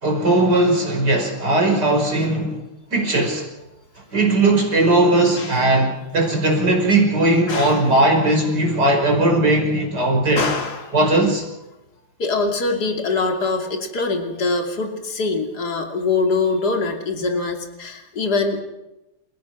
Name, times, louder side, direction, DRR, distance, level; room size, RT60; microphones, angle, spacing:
voice 1, 0.0-2.6 2.9-3.5 4.1-10.4 10.9-11.4, right 2 dB, 50° right, 0 dB, 6.0 m, -18 dB
voice 2, 7.5-7.9 10.4-10.9 12.2-18.6, left 3 dB, 45° left, 3 dB, 3.2 m, -23 dB
30.0 x 17.5 x 6.2 m, 0.94 s
omnidirectional pair, 2.4 m